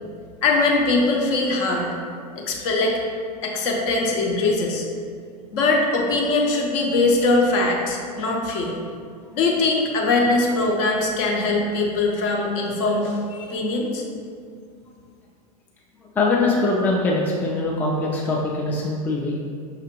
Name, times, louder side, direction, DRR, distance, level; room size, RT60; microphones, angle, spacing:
voice 1, 0.4-1.9 2.4-3.0 3.4-4.8 5.5-8.7 9.3-14.0, left 2 dB, 45° left, -1 dB, 0.7 m, -21 dB
voice 2, 16.1-19.4, left 2 dB, 10° left, -4 dB, 0.4 m, -22 dB
5.8 x 2.4 x 3.1 m, 2.2 s
figure-of-eight pair, 80°, 21 cm